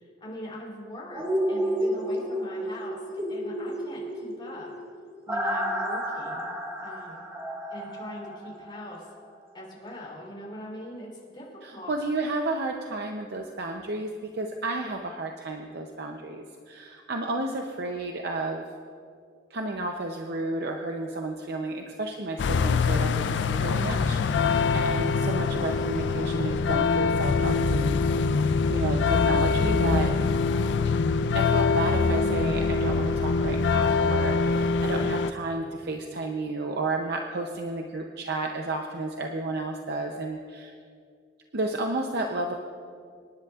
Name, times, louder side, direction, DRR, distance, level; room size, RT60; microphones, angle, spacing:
voice 1, 0.0-4.7 5.3-6.5 6.8-7.2 7.7-9.1 9.5-11.9, equal, 25° left, -4 dB, 3.2 m, -41 dB
sound 1, 1.1-9.0 9.4-9.5, equal, 15° right, 1.9 m, -31 dB
voice 2, 11.6-18.6 19.5-28.3 28.7-30.1 31.3-40.7 41.5-42.5, right 2 dB, 60° right, 3 dB, 0.7 m, -32 dB
sound 2, 22.4-35.3, left 4 dB, 65° left, 0.4 m, -24 dB
26.0 x 10.5 x 2.4 m, 2.2 s
head